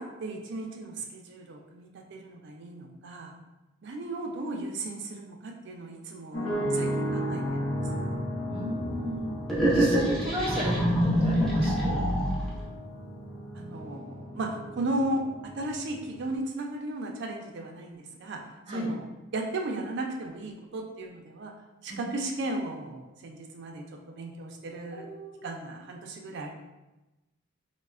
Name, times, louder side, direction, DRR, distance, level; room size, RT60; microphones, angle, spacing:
voice 1, 0.0-3.4 3.8-7.7 13.5-19.1 19.3-21.5 21.8-25.1 25.4-26.5, right 2 dB, 55° right, 2 dB, 0.4 m, -35 dB
sound 1, 6.3-16.4, equal, 70° left, 0.7 m, -35 dB
voice 2, 8.5-9.3 9.7-12.0 18.7-18.9 21.9-22.0 24.9-25.4, equal, 30° right, -4 dB, 0.7 m, -35 dB
sound 2, 9.5-12.6, equal, ahead, 0.5 m, -25 dB
3.1 x 2.1 x 2.3 m, 1.0 s
head